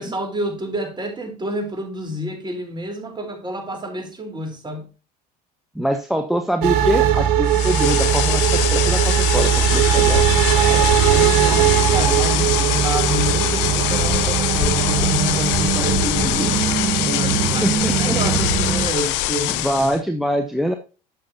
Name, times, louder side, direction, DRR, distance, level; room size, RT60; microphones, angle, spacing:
voice 1, 0.0-4.9 10.2-16.6 17.1-20.0, equal, 20° right, 3.7 m, -29 dB
voice 2, 5.7-10.2 17.6-18.2 19.5-20.7, equal, ahead, 1.0 m, -24 dB
sound 1, 6.6-18.9, right 10 dB, 70° right, 1.4 m, -19 dB
sound 2, 7.5-20.0, left 15 dB, 65° left, 0.9 m, -23 dB
11.5 x 7.1 x 2.8 m
hypercardioid pair, 75°, 21 cm